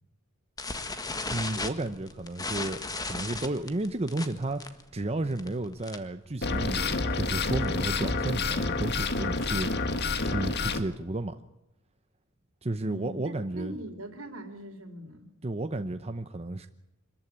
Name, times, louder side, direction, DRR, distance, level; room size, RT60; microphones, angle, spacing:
sound 1, 0.6-6.2 6.5-6.8 7.0-7.1 7.4-7.7 8.2-9.7, left 3 dB, 20° left, 1.6 m, -36 dB
voice 1, 1.3-11.4 12.6-13.8 15.4-16.7, right 2 dB, 30° right, 8 dB, 0.8 m, -33 dB
sound 2, 6.4-10.8, left 3 dB, 55° left, 1.6 m, -29 dB
voice 2, 12.8-15.3, right 1 dB, 75° right, 6 dB, 3.7 m, -41 dB
25.5 x 14.5 x 10.0 m, 0.89 s
head